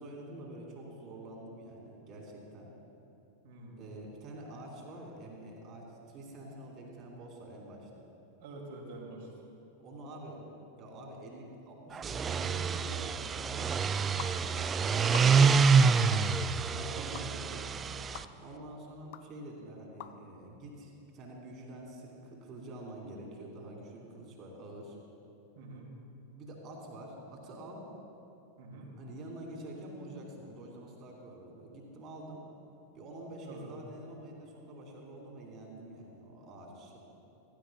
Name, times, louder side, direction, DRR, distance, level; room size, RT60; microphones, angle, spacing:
voice 1, 0.0-2.7 3.8-8.0 9.8-10.5 10.8-13.9 14.3-16.0 16.7-17.7 18.4-25.0 26.3-27.8 29.0-32.4 32.9-37.0, right 1 dB, 40° right, 0 dB, 2.6 m, -47 dB
voice 2, 3.4-3.8 8.4-9.3 13.4-13.7 14.0-14.2 14.5-14.8 16.8-17.1 25.6-25.9 28.6-28.9 33.5-33.7, right 2 dB, 60° right, -1 dB, 2.6 m, -47 dB
sound 1, 12.0-18.2, right 5 dB, 25° right, 0.3 m, -27 dB
sound 2, 14.2-14.3 15.1-15.6 16.1-16.3 17.1-17.3 18.1-18.3 19.1-19.2 20.0-20.1, left 12 dB, 55° left, 0.5 m, -43 dB
16.0 x 15.0 x 2.3 m, 2.8 s
figure-of-eight pair, 90°, 0 cm